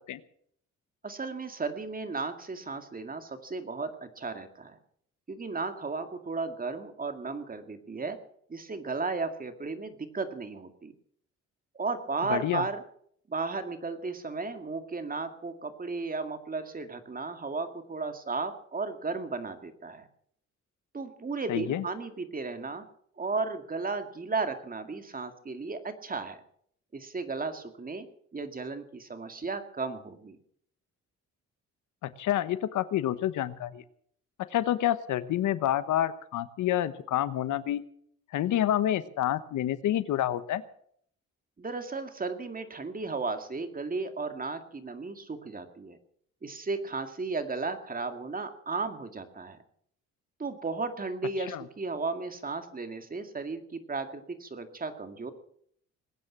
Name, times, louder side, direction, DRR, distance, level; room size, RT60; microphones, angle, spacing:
voice 1, 1.0-4.8 5.3-8.2 8.5-10.9 11.7-12.8 13.3-20.1 20.9-22.8 23.2-26.4 26.9-28.1 28.3-30.4 41.6-46.0 46.4-49.6 50.4-55.3, right 4 dB, 30° right, 7 dB, 2.2 m, -34 dB
voice 2, 12.3-12.6 21.5-21.8 32.0-33.8 34.5-37.8 38.3-40.6 51.5-51.6, left 12 dB, 75° left, 14 dB, 1.1 m, -28 dB
20.5 x 9.4 x 7.4 m, 0.65 s
cardioid pair, 90°, 30 cm